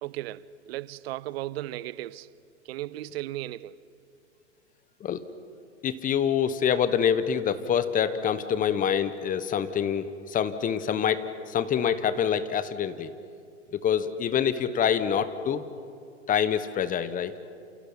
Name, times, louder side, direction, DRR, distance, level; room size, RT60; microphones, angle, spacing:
voice 1, 0.0-2.3 2.6-3.8, right 15 dB, 55° right, 0.8 m, -36 dB
voice 2, 5.8-13.1 13.7-15.6 16.3-17.3, left 8 dB, 20° left, 1.2 m, -26 dB
28.5 x 28.5 x 5.7 m
hypercardioid pair, 110°, 37 cm